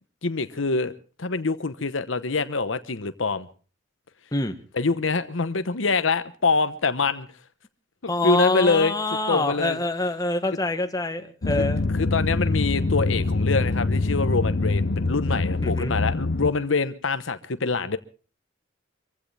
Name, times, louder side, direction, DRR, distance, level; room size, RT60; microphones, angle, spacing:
voice 1, 0.2-0.9 1.2-3.5 4.7-7.3 8.0-9.0 9.3-9.8 11.5-11.6 11.9-18.0, left 4 dB, 80° left, 12 dB, 1.0 m, -25 dB
voice 2, 8.1-11.8 15.6-15.9, left 2 dB, 20° left, 7 dB, 1.4 m, -25 dB
sound 1, 11.4-16.5, left 3 dB, 55° left, 0.9 m, -24 dB
25.5 x 15.5 x 3.3 m, 0.37 s
head